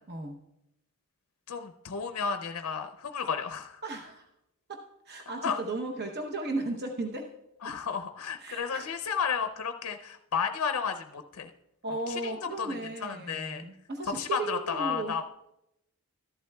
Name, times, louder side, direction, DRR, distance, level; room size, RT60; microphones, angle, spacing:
voice 1, 0.1-0.4 3.8-4.2 4.7-7.3 7.6-7.8 8.4-8.9 11.8-15.2, right 2 dB, 45° right, 3 dB, 0.8 m, -35 dB
voice 2, 1.5-3.8 5.4-5.6 7.6-11.5 12.1-13.6 14.1-15.2, left 6 dB, 70° left, 6 dB, 0.5 m, -32 dB
13.5 x 11.5 x 2.3 m, 0.85 s
head